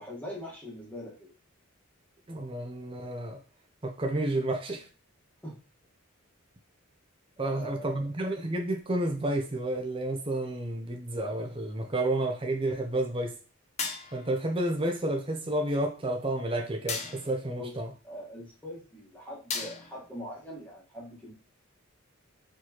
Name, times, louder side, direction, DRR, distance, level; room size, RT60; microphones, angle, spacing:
voice 1, 0.0-1.3 5.4-5.6 7.4-8.1 17.6-17.7 18.0-21.3, left 1 dB, 5° left, 1.4 m, -42 dB
voice 2, 2.3-3.4 3.8-4.8 7.4-13.3 14.1-17.9, right 1 dB, 25° right, 0.6 m, -30 dB
sound 1, 13.8-14.4 16.9-17.4 19.5-20.1, left 5 dB, 30° left, 0.5 m, -35 dB
4.4 x 3.1 x 2.9 m
head